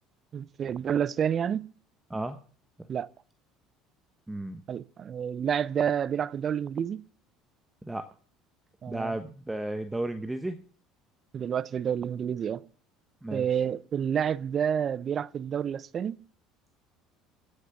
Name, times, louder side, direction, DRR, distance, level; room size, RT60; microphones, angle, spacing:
voice 1, 0.3-1.7 2.9-3.1 4.7-7.0 8.8-9.2 11.3-12.6 13.3-16.2, right 8 dB, 45° right, 0.6 m, -29 dB
voice 2, 4.3-4.6 7.8-8.1 8.9-10.6 13.2-13.4, right 1 dB, 10° right, 1.1 m, -33 dB
15.0 x 6.7 x 5.7 m
hypercardioid pair, 70°, 0 cm